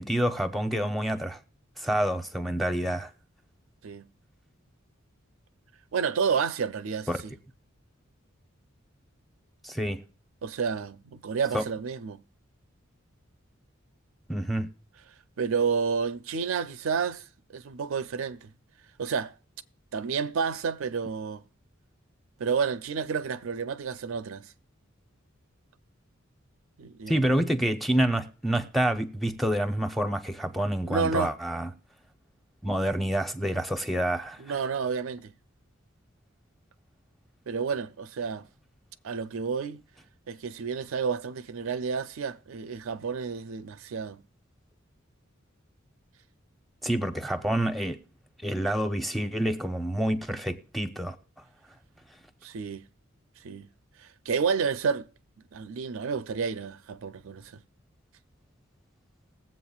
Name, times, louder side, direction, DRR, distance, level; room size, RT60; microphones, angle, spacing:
voice 1, 0.0-1.4 1.8-3.1 7.1-7.2 9.6-10.0 11.5-11.6 14.3-14.7 27.1-31.7 32.6-34.6 46.8-48.0 48.4-51.2, right 1 dB, ahead, 0.6 m, -28 dB
voice 2, 5.9-7.1 10.4-12.2 15.4-17.2 17.5-18.5 19.0-19.3 19.9-21.4 22.4-24.5 26.8-27.2 30.9-31.3 34.4-35.3 37.5-38.5 39.0-39.8 40.3-44.2 52.4-52.8 53.4-53.7 54.0-55.1 55.5-57.6, right 6 dB, 80° right, 0.4 m, -30 dB
20.5 x 7.6 x 2.3 m
head